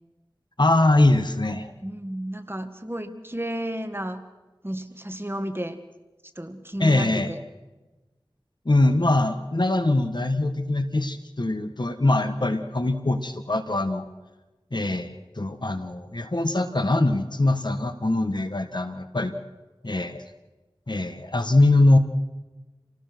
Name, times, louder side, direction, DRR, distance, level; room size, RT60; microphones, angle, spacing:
voice 1, 0.6-1.7 6.8-7.3 8.6-14.0 14.7-19.3 19.8-20.2 20.9-22.0, left 2 dB, 55° left, 8 dB, 1.7 m, -22 dB
voice 2, 1.8-4.2 4.6-5.8 6.4-7.4, right 1 dB, 25° right, 8 dB, 1.7 m, -32 dB
27.5 x 18.5 x 6.2 m, 1.2 s
wide cardioid pair, 40°, 9 cm